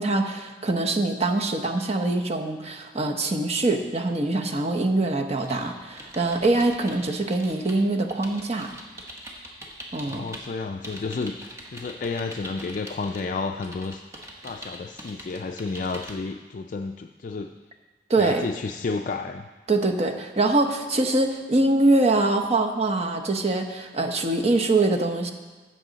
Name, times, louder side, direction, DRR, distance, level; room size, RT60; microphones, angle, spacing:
voice 1, 0.0-8.7 9.9-10.3 18.1-18.5 19.7-25.3, right 2 dB, 35° right, 4 dB, 0.8 m, -23 dB
sound 1, 5.3-10.5 10.8-13.2 13.6-16.2, equal, 15° right, 1.2 m, -42 dB
voice 2, 10.1-14.0 14.4-17.5 18.2-19.5, left 4 dB, 45° left, 4 dB, 0.4 m, -31 dB
15.0 x 6.3 x 4.0 m, 1.3 s
head